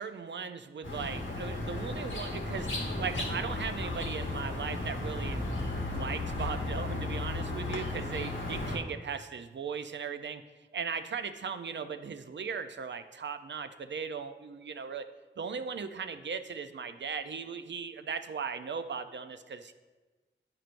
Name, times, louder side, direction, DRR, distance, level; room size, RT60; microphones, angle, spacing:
voice 1, 0.0-2.7 3.0-10.4 10.7-15.1 15.4-19.7, right 6 dB, 65° right, 9 dB, 0.5 m, -38 dB
sound 1, 0.8-8.8, left 2 dB, 85° left, 1.2 m, -35 dB
11.0 x 4.5 x 2.5 m, 1.3 s
wide cardioid pair, 60°, 20 cm